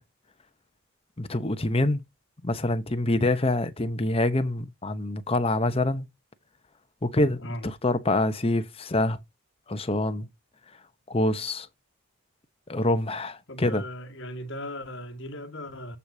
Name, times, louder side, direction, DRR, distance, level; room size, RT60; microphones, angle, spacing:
voice 1, 1.2-2.0 2.4-6.1 7.0-9.2 9.7-10.3 11.1-11.7 12.7-13.8, left 2 dB, 25° left, 0.8 m, -26 dB
voice 2, 13.5-16.0, left 1 dB, 55° left, 1.9 m, -37 dB
14.0 x 4.9 x 2.7 m
head